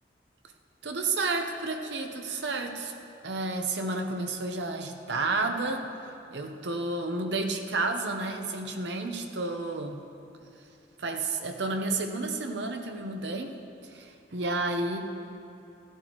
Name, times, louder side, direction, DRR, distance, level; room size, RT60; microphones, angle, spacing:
voice 1, 0.8-2.9 3.2-5.9 6.3-10.1 11.0-13.6 13.8-15.0, right 3 dB, 80° right, 4 dB, 0.9 m, -31 dB
16.0 x 11.5 x 3.1 m, 2.7 s
head